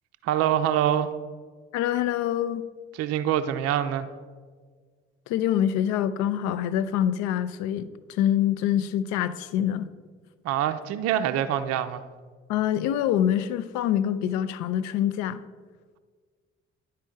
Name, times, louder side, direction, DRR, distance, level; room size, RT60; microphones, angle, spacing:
voice 1, 0.2-1.1 3.0-4.1 10.4-12.0, right 10 dB, 45° right, 9 dB, 0.5 m, -25 dB
voice 2, 1.7-2.6 5.3-9.9 12.5-15.4, left 10 dB, 55° left, 14 dB, 0.4 m, -25 dB
10.5 x 4.3 x 3.7 m, 1.6 s
figure-of-eight pair, 40°, 34 cm